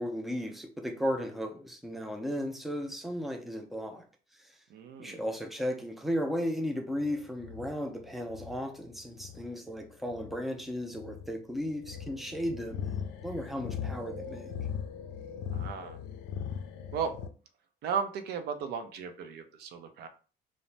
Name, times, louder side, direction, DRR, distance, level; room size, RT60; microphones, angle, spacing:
voice 1, 0.0-4.1 4.4-4.6 5.0-14.5, equal, ahead, 0.4 m, -35 dB
voice 2, 4.7-5.2 15.5-16.0 16.9-17.1 17.8-20.1, right 6 dB, 75° right, 0.5 m, -35 dB
sound 1, 6.9-17.3, left 7 dB, 85° left, 0.4 m, -40 dB
2.6 x 2.0 x 3.1 m
cardioid pair, 110°, 17 cm